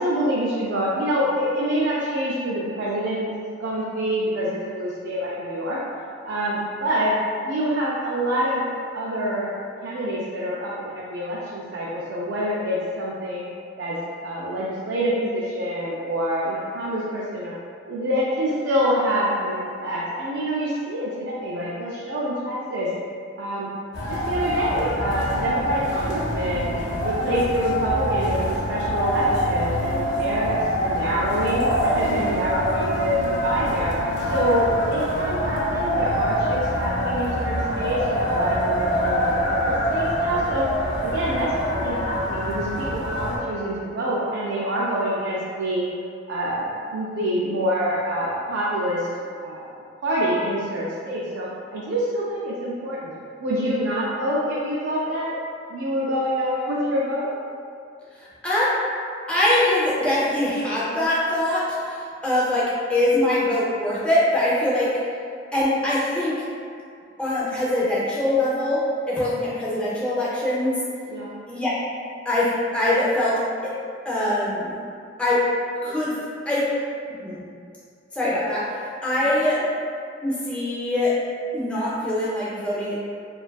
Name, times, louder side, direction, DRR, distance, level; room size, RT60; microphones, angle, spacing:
voice 1, 0.0-5.8 6.2-7.1 7.4-8.6 8.9-9.5 9.8-13.4 13.8-14.0 14.2-17.5 17.9-22.9 23.4-23.7 24.1-26.7 27.0-30.5 30.8-33.9 34.2-40.7 41.0-45.9 46.3-49.1 49.4-49.7 50.0-53.1 53.4-55.4 55.7-57.3 71.1-71.3, equal, 70° right, -7 dB, 0.3 m, -26 dB
sound 1, 23.9-43.4, equal, 75° left, 0.5 m, -25 dB
voice 2, 58.4-58.7 59.3-61.9 62.2-64.9 65.5-66.3 67.2-68.8 69.1-70.8 71.5-71.7 72.3-73.3 74.1-74.7 75.2-75.5 75.8-76.1 76.5-76.6 77.2-77.4 78.1-78.6 79.0-79.6 80.2-81.1 81.5-83.0, left 1 dB, 5° left, -9 dB, 0.4 m, -22 dB
2.5 x 2.3 x 2.2 m, 2.3 s
head